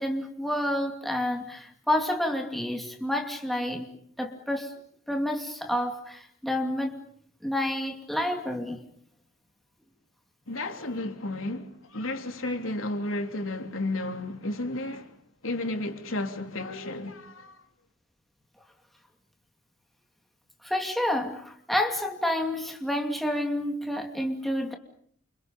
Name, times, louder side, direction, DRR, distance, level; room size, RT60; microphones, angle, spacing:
voice 1, 0.0-3.9 4.2-4.7 5.1-6.9 7.4-8.8 20.6-24.7, left 1 dB, ahead, 2.5 m, -29 dB
voice 2, 10.5-15.1 15.4-17.6, left 2 dB, 85° left, 3.3 m, -32 dB
29.0 x 27.5 x 5.5 m
head